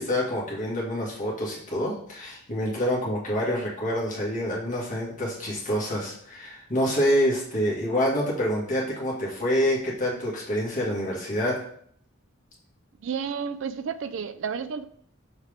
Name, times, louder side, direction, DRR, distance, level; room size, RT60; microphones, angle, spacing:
voice 1, 0.0-11.6, equal, 35° left, -5 dB, 2.0 m, -27 dB
voice 2, 13.0-14.9, right 6 dB, 60° right, 12 dB, 0.3 m, -31 dB
6.6 x 4.5 x 3.6 m, 0.63 s
head